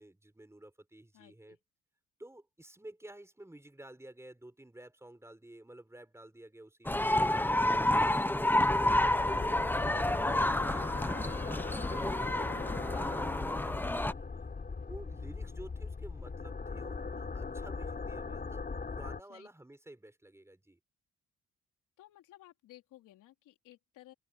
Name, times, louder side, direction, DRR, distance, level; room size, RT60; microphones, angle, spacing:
voice 1, 0.0-1.6 2.2-7.1 7.5-7.8 9.6-9.7 10.1-14.5 14.9-20.8, right 1 dB, 10° right, 4.8 m, -52 dB
voice 2, 1.1-1.6 19.3-19.5 22.0-24.1, left 15 dB, 90° left, 4.1 m, -57 dB
sound 1, 6.9-14.1, left 1 dB, 5° left, 1.0 m, -29 dB
sound 2, 8.6-19.2, left 4 dB, 30° left, 4.0 m, -39 dB
cardioid pair, 90°, 30 cm